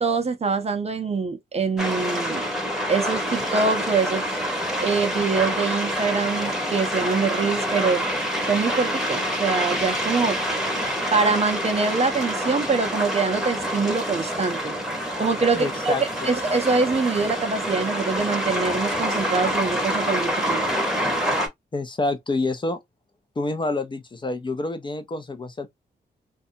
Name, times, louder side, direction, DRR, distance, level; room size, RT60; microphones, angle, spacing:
voice 1, 0.0-2.4 2.9-4.4 4.8-8.0 8.5-10.4 11.1-14.8 15.2-15.9 16.2-20.6, right 4 dB, 35° right, 0.5 m, -24 dB
sound 1, 1.8-21.5, equal, ahead, 0.9 m, -26 dB
voice 2, 15.5-16.3 21.7-22.8 23.4-25.7, left 2 dB, 25° left, 0.5 m, -27 dB
2.6 x 2.2 x 2.6 m
cardioid pair, 95°, 18 cm